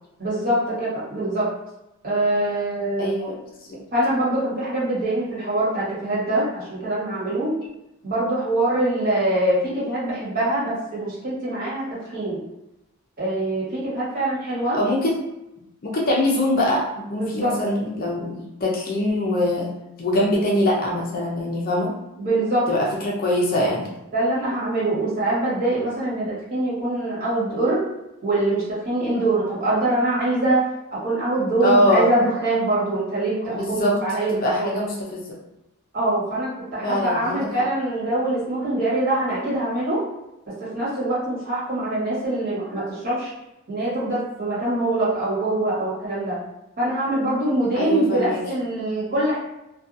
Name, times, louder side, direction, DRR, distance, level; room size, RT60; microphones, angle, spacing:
voice 1, 0.2-1.5 2.0-3.3 3.9-7.5 8.0-12.4 13.2-14.8 17.2-17.5 22.2-22.7 24.1-27.8 28.2-30.6 30.9-34.8 35.9-40.0 40.6-43.3 43.7-46.4 46.8-49.4, right 1 dB, 45° right, -9 dB, 1.3 m, -24 dB
voice 2, 3.0-3.4 14.7-15.2 15.8-19.7 20.0-22.0 22.7-23.9 31.6-32.1 33.5-34.0 34.3-35.4 36.8-37.7 47.7-48.4, left 1 dB, 40° left, -2 dB, 0.5 m, -23 dB
2.6 x 2.2 x 2.5 m, 0.91 s
head